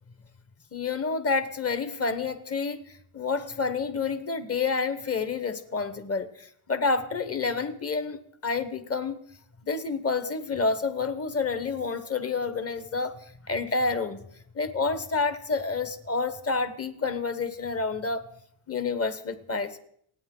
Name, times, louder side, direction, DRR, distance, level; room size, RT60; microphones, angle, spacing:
voice 1, 0.7-9.2 9.6-13.2 13.5-14.2 14.5-18.3 18.7-19.8, left 4 dB, 30° left, 12 dB, 1.1 m, -29 dB
28.5 x 9.6 x 3.8 m, 0.67 s
wide cardioid pair, 155°, 48 cm